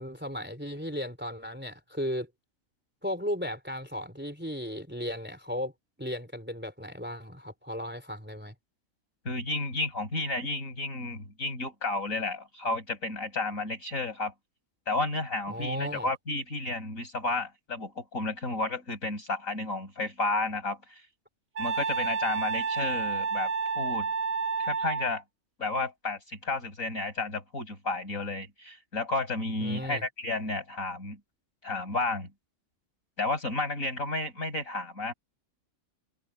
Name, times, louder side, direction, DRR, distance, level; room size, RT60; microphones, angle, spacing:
voice 1, 0.0-2.3 3.0-5.7 6.0-8.5 15.5-16.1 29.6-30.0, equal, 5° right, 3.7 m, -35 dB
voice 2, 9.3-14.3 14.9-21.0 21.6-24.1 24.6-25.2 25.6-31.2 31.6-32.3 33.2-35.1, left 2 dB, 65° left, 7.4 m, -32 dB
Wind instrument woodwind instrument, 21.6-25.2, right 5 dB, 65° right, 3.1 m, -30 dB
omnidirectional pair, 1.5 m